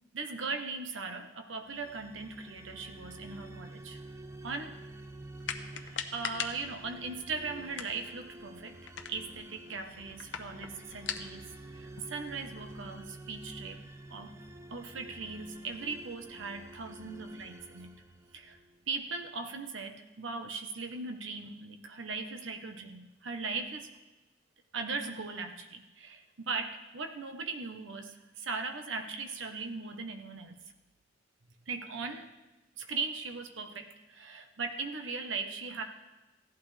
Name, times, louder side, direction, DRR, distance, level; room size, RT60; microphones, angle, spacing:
voice 1, 0.1-4.0 4.4-4.8 5.6-13.8 14.1-14.4 14.7-18.0 18.3-18.6 18.9-23.9 24.7-30.6 31.7-32.3 32.8-35.8, right 4 dB, 90° right, 6 dB, 1.0 m, -39 dB
sound 1, 1.7-18.8, right 1 dB, 15° right, 0.5 m, -49 dB
sound 2, 5.4-12.8, left 7 dB, 75° left, 0.8 m, -43 dB
16.5 x 11.5 x 3.3 m, 1.1 s
head